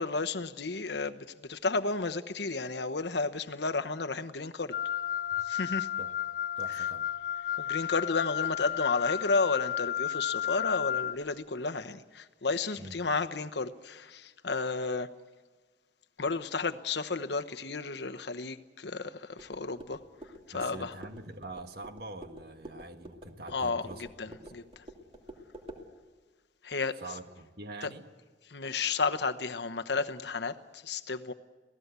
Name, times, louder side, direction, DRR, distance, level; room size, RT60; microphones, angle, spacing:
voice 1, 0.0-4.8 5.5-5.9 7.6-15.1 16.2-20.0 20.5-20.9 23.5-23.8 24.2-24.8 26.6-27.0 27.8-27.9 28.5-31.3, left 4 dB, 70° left, 1.1 m, -32 dB
Wind instrument woodwind instrument, 4.7-11.2, left 11 dB, 45° left, 1.1 m, -32 dB
voice 2, 6.6-7.1 12.7-13.0 20.5-24.5 27.0-28.1, right 2 dB, 60° right, 1.5 m, -45 dB
sound 1, 19.4-25.9, equal, 30° right, 2.7 m, -49 dB
27.0 x 17.5 x 8.2 m
head